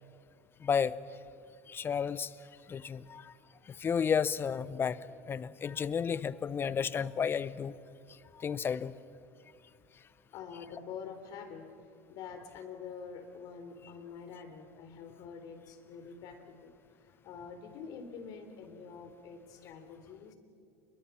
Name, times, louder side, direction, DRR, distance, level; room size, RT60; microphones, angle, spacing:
voice 1, 0.6-1.0 1.7-2.3 2.7-3.3 3.7-5.0 5.3-7.7 8.3-8.9, left 7 dB, 30° left, 17 dB, 0.9 m, -32 dB
voice 2, 10.3-11.7 12.1-20.3, left 6 dB, 60° left, 7 dB, 3.7 m, -46 dB
28.5 x 23.0 x 5.9 m, 2.4 s
hypercardioid pair, 90°, 7 cm